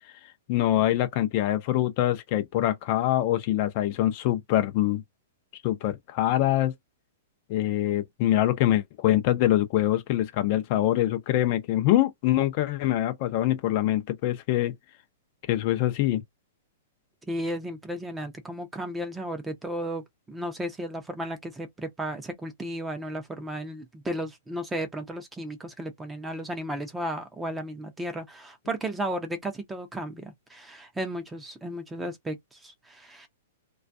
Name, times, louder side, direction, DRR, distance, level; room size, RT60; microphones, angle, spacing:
voice 1, 0.5-5.0 5.6-6.7 7.5-14.7 15.5-16.2, left 13 dB, 40° left, 0.5 m, -24 dB
voice 2, 17.3-33.3, right 1 dB, 10° right, 0.6 m, -34 dB
2.2 x 2.2 x 2.6 m
hypercardioid pair, 150°, 0 cm